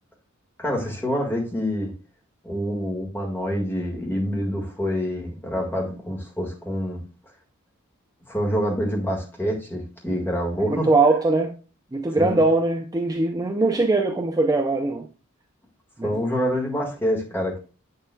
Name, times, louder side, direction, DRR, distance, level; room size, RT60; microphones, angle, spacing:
voice 1, 0.6-1.9 2.4-7.0 8.3-10.9 12.1-12.4 16.0-17.6, equal, 10° left, 1.7 m, -26 dB
voice 2, 10.7-11.5 11.9-15.1 16.0-16.1, right 2 dB, 15° right, 0.4 m, -21 dB
7.8 x 6.8 x 2.2 m
head